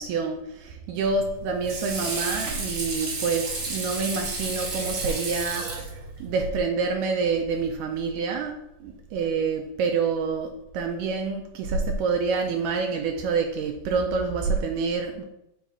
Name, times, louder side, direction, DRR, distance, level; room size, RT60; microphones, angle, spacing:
voice 1, 0.0-5.9 6.2-8.5 8.8-15.2, right 4 dB, 80° right, 2 dB, 2.0 m, -27 dB
Water / Sink (filling or washing), 1.0-6.5, right 3 dB, 60° right, 1.8 m, -32 dB
9.8 x 4.1 x 2.4 m, 0.82 s
omnidirectional pair, 3.4 m